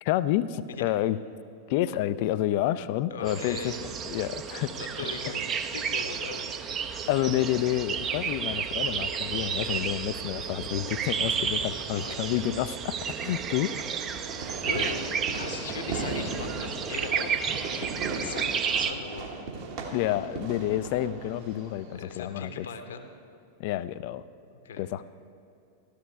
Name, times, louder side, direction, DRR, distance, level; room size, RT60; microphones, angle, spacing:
voice 1, 0.0-1.2 1.7-4.7 7.1-13.7 19.9-22.7 23.6-24.2 24.8-25.0, left 13 dB, 45° left, 15 dB, 0.4 m, -29 dB
voice 2, 3.1-3.8 4.7-6.5 11.9-12.1 14.3-19.3 21.9-23.1 24.5-24.8, left 5 dB, 65° left, 7 dB, 1.0 m, -39 dB
sound 1, 3.3-18.9, right 7 dB, 30° right, 0.6 m, -32 dB
Fireworks, 13.2-22.2, right 4 dB, 50° right, 1.4 m, -37 dB
13.5 x 13.0 x 3.4 m, 2.7 s
figure-of-eight pair, 90°, 0 cm